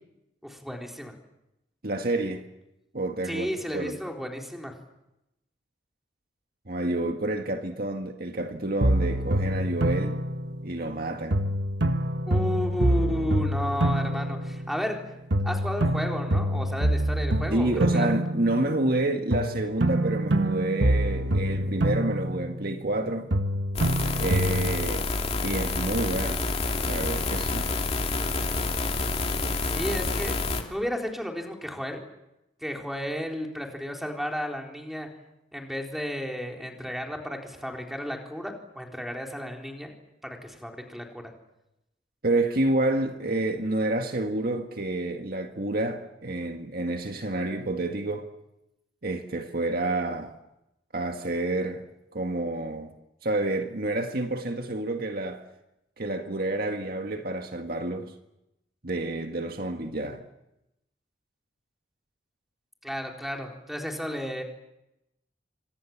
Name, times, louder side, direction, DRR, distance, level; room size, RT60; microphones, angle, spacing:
voice 1, 0.4-1.1 3.3-4.7 12.3-15.0 15.4-18.1 29.7-30.4 30.7-32.0 32.6-35.1 35.5-39.9 40.2-41.3 62.8-64.4, equal, ahead, 4.0 m, -33 dB
voice 2, 1.8-2.4 2.9-3.5 3.7-4.0 6.7-10.2 10.6-11.4 17.5-23.3 24.2-25.1 25.4-26.5 26.9-27.7 42.2-48.3 49.0-50.4 50.9-51.8 52.1-52.9 53.2-55.4 56.0-58.1 58.8-60.2, right 2 dB, 55° right, 1.8 m, -29 dB
sound 1, 8.8-11.0 11.3-15.0 15.3-19.0 19.3-23.0 23.3-24.9, right 1 dB, 85° right, 1.6 m, -26 dB
sound 2, 23.7-30.6, left 3 dB, 35° left, 2.7 m, -28 dB
28.5 x 25.5 x 7.4 m
head